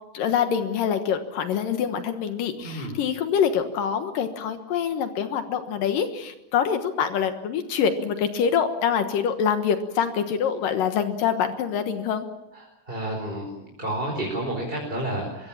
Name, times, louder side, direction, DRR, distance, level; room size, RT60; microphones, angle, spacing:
voice 1, 0.1-12.3, left 7 dB, 75° left, 7 dB, 2.9 m, -25 dB
voice 2, 2.6-2.9 12.5-13.5 13.8-15.5, right 1 dB, 15° right, 0 dB, 4.7 m, -30 dB
24.0 x 23.5 x 7.3 m, 0.90 s
omnidirectional pair, 4.0 m